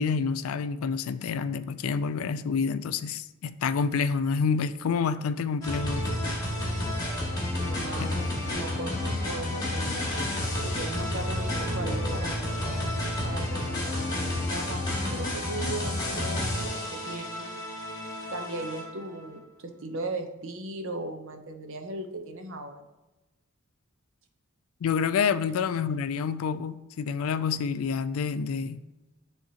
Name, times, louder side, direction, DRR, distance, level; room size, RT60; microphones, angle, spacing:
voice 1, 0.0-6.1 8.0-8.1 24.8-28.8, left 5 dB, 65° left, 0.3 m, -28 dB
sound 1, 5.6-19.1, left 1 dB, 20° left, 2.0 m, -30 dB
voice 2, 7.5-10.1 10.6-12.5 13.2-17.6 18.3-22.9, right 2 dB, 60° right, 0.8 m, -38 dB
sound 2, 11.3-15.0, right 2 dB, 15° right, 1.1 m, -43 dB
10.0 x 3.6 x 2.9 m
head